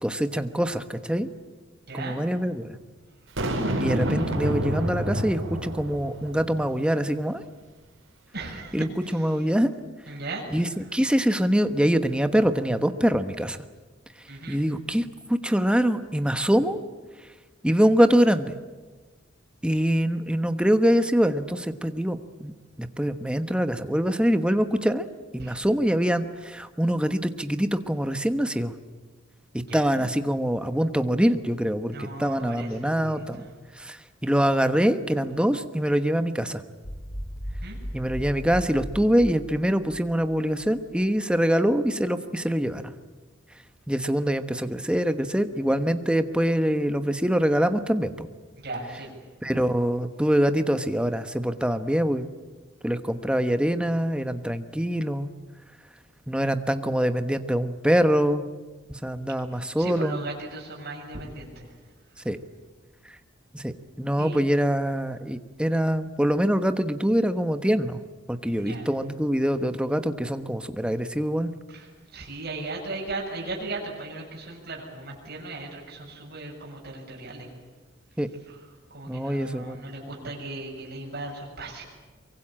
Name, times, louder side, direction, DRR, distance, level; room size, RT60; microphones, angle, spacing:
voice 1, 0.0-1.3 1.9-2.8 3.8-7.4 8.7-9.7 10.5-13.6 14.5-16.8 17.6-18.5 19.6-25.1 25.3-28.7 29.7-33.5 33.8-36.6 37.9-42.8 43.9-48.3 49.4-52.3 52.8-55.3 56.3-58.4 58.9-60.2 62.2-62.4 63.5-68.0 68.3-71.5 78.2-78.3 79.1-79.8 80.0-80.1, equal, 5° right, 9 dB, 1.1 m, -24 dB
voice 2, 1.9-2.2 8.3-9.3 10.1-10.4 14.3-14.6 25.4-25.6 29.7-30.1 31.9-33.5 37.6-37.8 48.6-49.2 59.5-61.7 62.2-62.3 64.2-64.4 68.6-68.9 71.7-77.5 78.5-78.6 78.9-81.8, right 2 dB, 50° right, -2 dB, 7.2 m, -37 dB
Boom, 3.4-6.7, right 1 dB, 90° right, 5.3 m, -28 dB
sound 1, 36.8-41.0, equal, 60° left, 6.6 m, -37 dB
24.0 x 23.5 x 8.8 m, 1.3 s
head